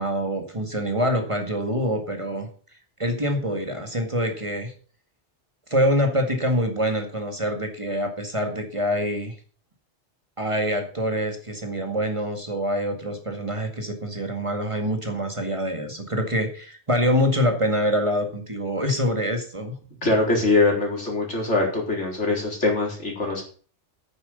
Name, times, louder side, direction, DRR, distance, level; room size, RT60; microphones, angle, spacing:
voice 1, 0.0-2.5 3.0-4.7 5.7-9.4 10.4-19.8, equal, 25° right, 4 dB, 2.0 m, -25 dB
voice 2, 20.0-23.4, left 3 dB, 80° left, 0 dB, 4.4 m, -22 dB
9.2 x 7.8 x 6.8 m, 0.42 s
omnidirectional pair, 1.2 m